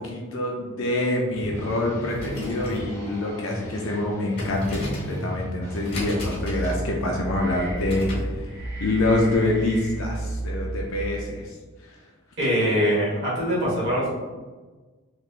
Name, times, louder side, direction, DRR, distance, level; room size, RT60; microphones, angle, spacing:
voice 1, 0.0-11.5, left 2 dB, 70° left, -1 dB, 0.5 m, -26 dB
sound 1, 1.3-6.4, equal, 10° left, 0.7 m, -35 dB
sound 2, 2.0-8.4, left 1 dB, 50° left, 1.2 m, -37 dB
sound 3, 6.1-11.4, right 2 dB, 15° right, 1.3 m, -33 dB
voice 2, 12.4-14.1, equal, 55° right, -7 dB, 1.2 m, -23 dB
3.3 x 3.0 x 2.4 m, 1.3 s
head